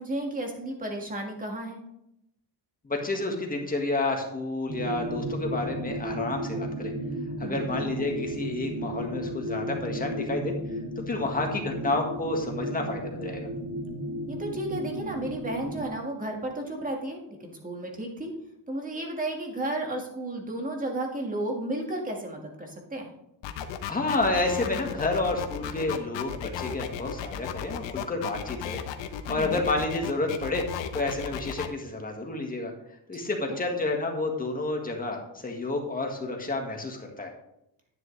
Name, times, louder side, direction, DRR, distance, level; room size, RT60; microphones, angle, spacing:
voice 1, 0.0-1.8 7.4-7.8 14.3-18.3 18.7-23.1 29.3-29.6 33.1-33.6, right 1 dB, 20° right, 2 dB, 1.9 m, -33 dB
voice 2, 2.8-6.9 7.4-10.5 11.1-13.5 23.9-28.8 29.3-30.6 30.9-32.7 33.1-37.3, left 2 dB, 20° left, 2 dB, 1.7 m, -30 dB
sound 1, 4.7-15.9, right 1 dB, 45° right, 3.6 m, -34 dB
sound 2, 23.4-31.7, left 9 dB, 75° left, 1.1 m, -35 dB
10.5 x 9.8 x 3.3 m, 0.81 s
cardioid pair, 145°, 44 cm